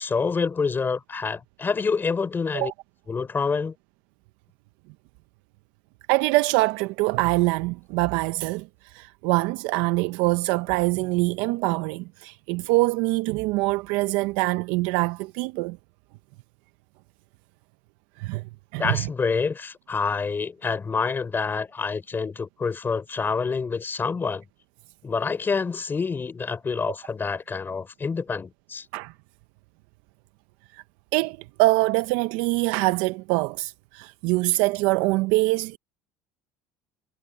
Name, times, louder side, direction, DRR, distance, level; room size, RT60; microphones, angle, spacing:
voice 1, 0.0-2.7 3.1-3.7 18.8-24.4 25.0-28.8, left 5 dB, 25° left, 4.2 m, -27 dB
voice 2, 6.1-15.8 18.2-18.4 18.7-19.1 28.9-29.1 30.7-30.8 31.1-35.8, right 22 dB, 80° right, 0.6 m, -24 dB
supercardioid pair, 90°, 8 cm